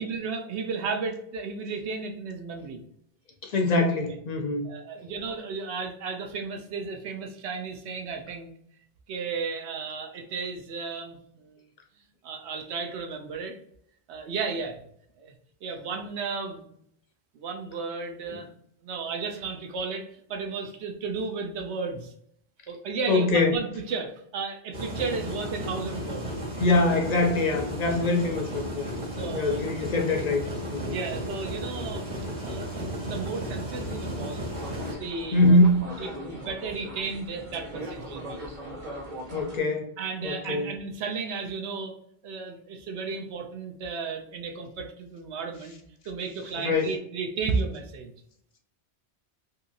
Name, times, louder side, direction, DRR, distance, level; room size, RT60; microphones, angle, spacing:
voice 1, 0.0-2.8 4.6-8.5 9.1-11.6 12.2-13.6 14.1-14.8 15.2-15.3 15.6-16.6 17.3-18.5 18.8-22.1 22.7-26.3 29.2-29.6 30.8-34.4 34.9-35.6 36.0-38.4 40.0-41.9 42.2-45.7 46.1-48.1, right 4 dB, 75° right, 3 dB, 0.8 m, -34 dB
voice 2, 3.4-4.7 23.1-23.6 26.6-28.9 29.3-30.4 30.7-31.0 35.3-35.9 39.3-39.9 40.2-40.7 46.6-47.0, left 2 dB, 55° left, 3 dB, 0.4 m, -23 dB
sound 1, 24.7-34.9, equal, 30° right, 1.2 m, -34 dB
sound 2, 34.5-39.6, equal, 50° right, 0.8 m, -38 dB
2.8 x 2.7 x 2.5 m, 0.69 s
omnidirectional pair, 1.1 m